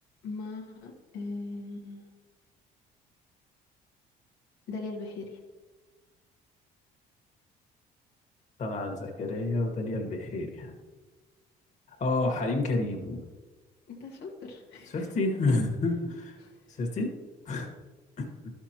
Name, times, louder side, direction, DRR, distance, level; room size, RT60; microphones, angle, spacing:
voice 1, 0.2-2.1 4.7-5.4 13.9-14.9 16.4-16.6, left 3 dB, 85° left, -1 dB, 1.4 m, -39 dB
voice 2, 8.6-10.7 11.9-13.2 14.9-16.4 16.7-17.1 17.4-17.7 18.2-18.3, left 2 dB, 45° left, 1 dB, 1.6 m, -29 dB
12.0 x 6.1 x 2.9 m, 1.3 s
cardioid pair, 110°, 17 cm